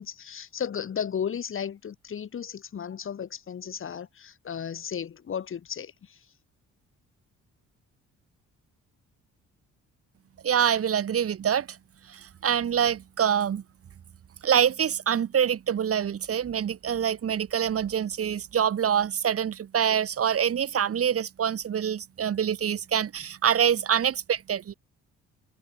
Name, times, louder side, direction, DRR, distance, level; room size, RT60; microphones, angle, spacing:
voice 1, 0.0-6.3, left 8 dB, 45° left, 1.3 m, -34 dB
voice 2, 10.4-11.8 12.1-13.6 14.4-24.7, right 8 dB, 50° right, 1.5 m, -25 dB
cardioid pair, 90°, 30 cm